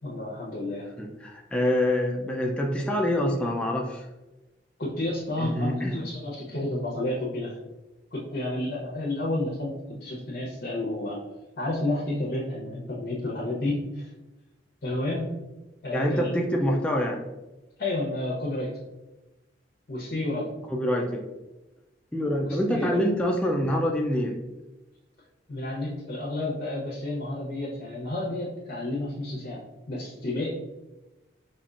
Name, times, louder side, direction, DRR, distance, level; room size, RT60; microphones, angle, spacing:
voice 1, 0.0-0.9 4.8-7.6 8.1-11.2 11.6-14.1 14.8-15.3 15.8-16.3 17.8-18.7 19.9-20.5 22.4-23.0 25.5-29.6 29.9-30.5, left 1 dB, 60° left, -5 dB, 0.8 m, -31 dB
voice 2, 1.0-4.1 5.4-6.0 15.9-17.2 20.7-21.2 22.1-24.4, left 1 dB, 5° left, 0 dB, 0.3 m, -26 dB
5.1 x 2.4 x 2.4 m, 1.0 s
head